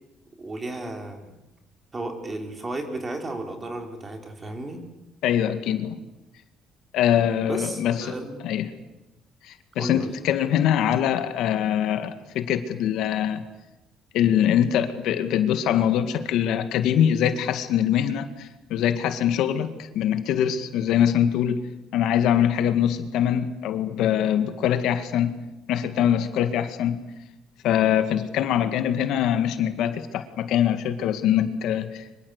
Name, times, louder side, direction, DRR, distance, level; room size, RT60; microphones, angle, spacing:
voice 1, 0.4-1.3 1.9-4.8 7.5-8.4 9.8-10.1, right 2 dB, 20° right, 4 dB, 3.7 m, -33 dB
voice 2, 5.2-6.0 6.9-8.1 8.4-8.7 9.5-13.4 14.1-21.6 21.9-25.3 25.7-27.0 27.6-32.0, left 10 dB, 65° left, 9 dB, 2.0 m, -23 dB
25.0 x 23.5 x 8.2 m, 0.98 s
cardioid pair, 155°, 0 cm